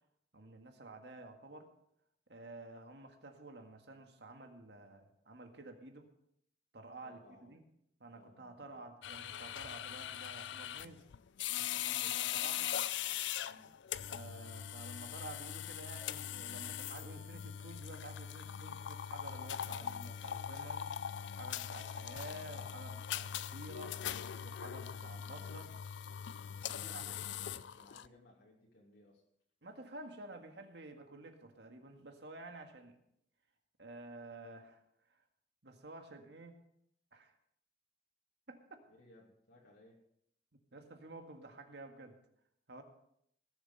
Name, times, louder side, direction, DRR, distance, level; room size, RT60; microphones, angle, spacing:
voice 1, 0.3-1.7 2.3-6.1 6.7-7.6 8.0-11.0 11.6-12.8 14.1-20.9 21.3-24.0 24.4-25.7 26.6-27.0 29.6-33.0 33.8-34.8 35.1-35.2 35.6-36.6 37.1-37.3 38.5-38.8 40.7-42.2 42.7-42.8, right 2 dB, 65° right, 5 dB, 1.8 m, -51 dB
voice 2, 7.0-7.6 8.1-8.8 13.4-13.7 26.7-29.2 38.9-40.0, left 1 dB, 70° left, -2 dB, 2.6 m, -62 dB
sound 1, 9.0-28.1, left 10 dB, 90° left, 0.4 m, -41 dB
18.5 x 7.4 x 5.5 m, 0.72 s
head